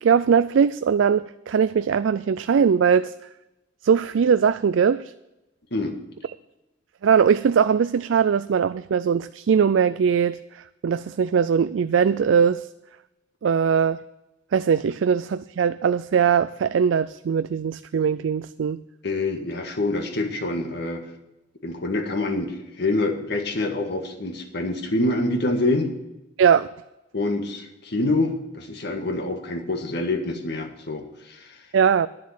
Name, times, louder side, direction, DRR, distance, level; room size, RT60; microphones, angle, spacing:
voice 1, 0.0-3.1 3.8-5.0 7.0-10.4 10.8-12.7 13.4-14.0 14.5-18.8 26.4-26.7 31.7-32.1, right 7 dB, 90° right, 13 dB, 0.4 m, -20 dB
voice 2, 19.0-21.1 21.6-25.9 27.1-31.5, left 2 dB, 65° left, 5 dB, 1.7 m, -26 dB
10.5 x 7.5 x 7.3 m, 0.97 s
head